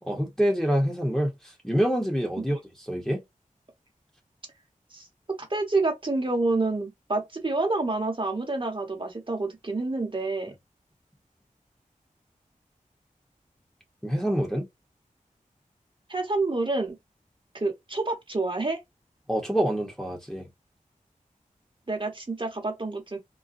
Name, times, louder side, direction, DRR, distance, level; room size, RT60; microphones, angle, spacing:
voice 1, 0.0-3.2 14.0-14.7 19.3-20.5, equal, 5° left, 0.8 m, -26 dB
voice 2, 5.5-10.5 16.1-16.9 17.5-18.8 21.9-23.2, right 3 dB, 35° right, 0.9 m, -28 dB
3.8 x 2.1 x 2.5 m
wide cardioid pair, 80°, 14 cm